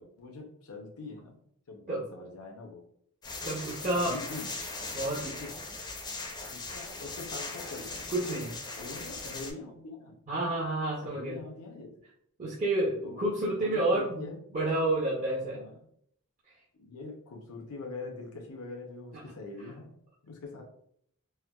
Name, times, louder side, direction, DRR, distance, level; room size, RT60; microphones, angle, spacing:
voice 1, 0.0-1.4 1.7-2.8 3.4-3.5 3.9-4.5 5.0-5.6 6.5-8.4 8.8-10.2 11.0-11.9 13.0-13.2 13.5-14.4 15.4-15.8 16.7-20.0 20.2-20.6, left 3 dB, 85° left, 1 dB, 0.6 m, -43 dB
sound 1, 3.2-9.5, left 3 dB, 20° left, 0.5 m, -39 dB
voice 2, 3.4-4.2 4.9-5.3 8.1-8.5 10.3-11.4 12.4-15.6 19.6-19.7, right 1 dB, 35° right, -6 dB, 0.7 m, -30 dB
4.3 x 2.1 x 2.2 m, 0.68 s
head